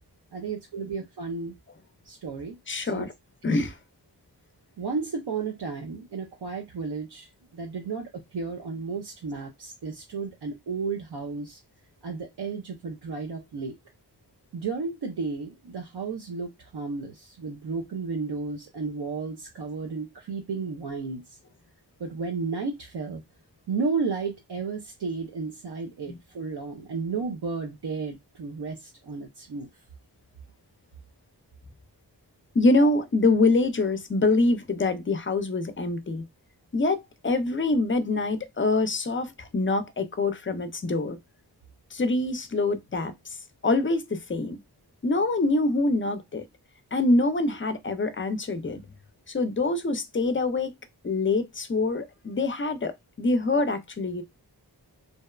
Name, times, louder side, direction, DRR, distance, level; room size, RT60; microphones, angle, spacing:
voice 1, 0.3-1.5 2.0-2.6 2.8-3.1 3.5-3.6 4.8-7.3 7.5-11.6 12.0-13.7 14.5-21.2 22.0-23.2 23.7-29.7, right 4 dB, 70° right, 0.5 m, -33 dB
voice 2, 2.7-3.1 3.4-3.7 26.1-26.2 32.6-36.2 36.7-41.2 41.9-43.1 43.6-44.6 45.0-46.4 46.9-48.8 49.3-50.7 51.0-54.2, left 2 dB, 30° left, 0.4 m, -25 dB
2.7 x 2.1 x 2.2 m
wide cardioid pair, 45°, 42 cm